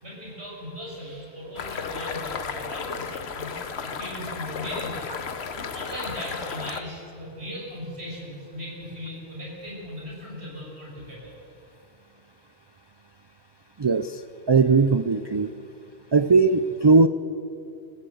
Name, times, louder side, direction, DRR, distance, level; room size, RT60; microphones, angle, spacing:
voice 1, 0.0-3.5 3.8-11.4 16.8-16.9, equal, 80° right, -4 dB, 6.2 m, -38 dB
sound 1, 1.6-6.8, left 6 dB, 75° left, 1.3 m, -34 dB
voice 2, 13.8-14.2 14.5-15.5 16.1-17.1, right 4 dB, 40° right, 11 dB, 0.4 m, -19 dB
24.5 x 15.5 x 7.9 m, 2.7 s
omnidirectional pair, 1.1 m